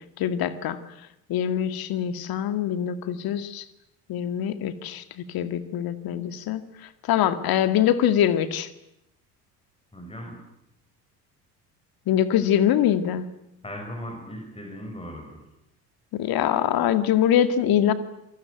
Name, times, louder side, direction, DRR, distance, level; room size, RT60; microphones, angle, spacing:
voice 1, 0.2-0.8 1.3-3.6 4.1-6.6 7.1-8.7 12.1-13.3 16.1-17.9, left 10 dB, 50° left, 12 dB, 2.2 m, -23 dB
voice 2, 9.9-10.4 13.6-15.4, equal, 10° left, 2 dB, 5.7 m, -38 dB
27.0 x 20.0 x 9.3 m, 0.83 s
figure-of-eight pair, 60°, 46 cm